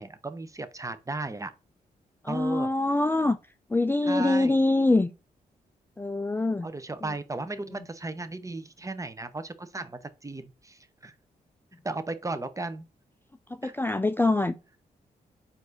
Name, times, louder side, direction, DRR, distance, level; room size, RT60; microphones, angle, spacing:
voice 1, 0.0-1.5 2.3-2.7 4.0-4.6 6.6-11.1 11.8-12.8 13.6-13.8, right 3 dB, 20° right, 0.7 m, -35 dB
voice 2, 2.2-3.4 3.7-5.1 6.0-6.7 7.7-7.8 13.6-14.6, left 2 dB, 10° left, 0.4 m, -24 dB
4.5 x 2.7 x 4.0 m
supercardioid pair, 40°, 17 cm